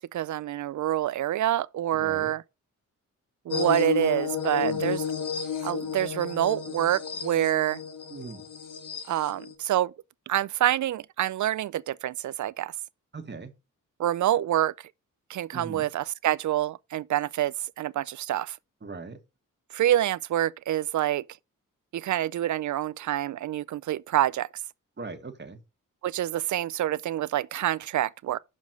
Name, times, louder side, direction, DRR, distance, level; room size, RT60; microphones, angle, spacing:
voice 1, 0.1-2.4 3.5-5.1 5.6-7.8 9.1-9.9 10.3-12.7 14.0-14.7 15.3-18.6 19.7-21.2 21.9-24.5 26.0-28.4, right 12 dB, 65° right, 0.5 m, -27 dB
voice 2, 1.9-2.3 4.6-4.9 8.1-8.4 13.1-13.5 15.5-15.9 18.8-19.2 25.0-25.6, right 4 dB, 35° right, 1.7 m, -40 dB
sound 1, 3.5-9.5, left 6 dB, 70° left, 1.5 m, -32 dB
6.3 x 5.2 x 5.3 m
cardioid pair, 70°, 33 cm